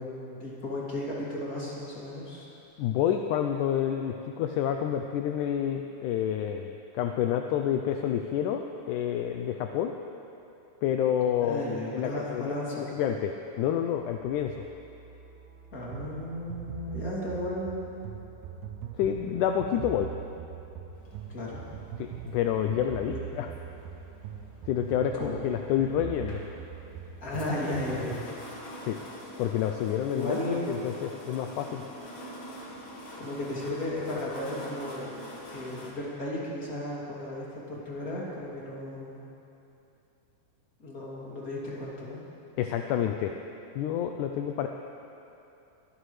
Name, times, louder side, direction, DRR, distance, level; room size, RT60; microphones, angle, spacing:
voice 1, 0.0-2.5 11.5-12.9 15.7-18.2 21.3-21.6 23.0-23.2 25.2-25.4 27.2-28.4 30.1-30.6 33.2-35.1 35.5-39.3 40.8-42.2, left 1 dB, 25° left, -6 dB, 2.9 m, -35 dB
voice 2, 2.8-9.9 10.8-11.6 11.9-14.6 19.0-20.1 22.0-23.5 24.7-26.4 28.8-29.0 29.4-30.4 30.7-31.8 42.6-43.3 43.8-44.7, left 9 dB, 80° left, 5 dB, 2.0 m, -28 dB
sound 1, 13.9-27.4, right 4 dB, 60° right, 3.0 m, -53 dB
sound 2, 15.9-28.4, right 9 dB, 75° right, 2.2 m, -41 dB
sound 3, 20.9-35.9, left 1 dB, 45° left, 2.3 m, -46 dB
22.5 x 14.5 x 3.3 m, 2.8 s
omnidirectional pair, 3.8 m